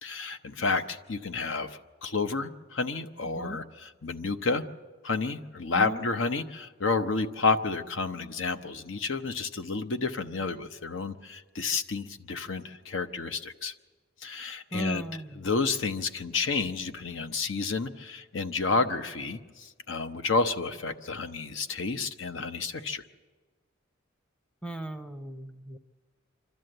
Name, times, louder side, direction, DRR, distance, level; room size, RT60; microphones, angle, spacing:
voice 1, 0.0-4.6 5.0-13.7 14.2-15.0 15.3-23.0, left 4 dB, 65° left, 8 dB, 0.8 m, -30 dB
voice 2, 3.3-3.6 5.7-6.0 14.7-15.4 24.6-25.8, right 1 dB, 5° left, 8 dB, 0.7 m, -37 dB
26.0 x 12.5 x 7.8 m, 1.4 s
head